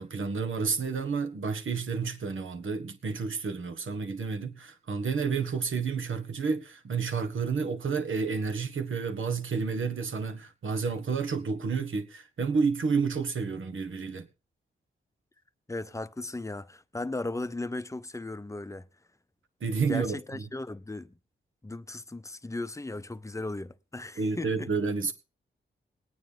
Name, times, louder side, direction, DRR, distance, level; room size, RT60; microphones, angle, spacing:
voice 1, 0.0-14.3 19.6-20.4 24.2-25.1, right 5 dB, 70° right, 1.6 m, -30 dB
voice 2, 15.7-18.9 19.9-21.1 21.6-24.7, left 2 dB, 15° left, 0.7 m, -36 dB
21.5 x 9.2 x 3.6 m
cardioid pair, 65°, 21 cm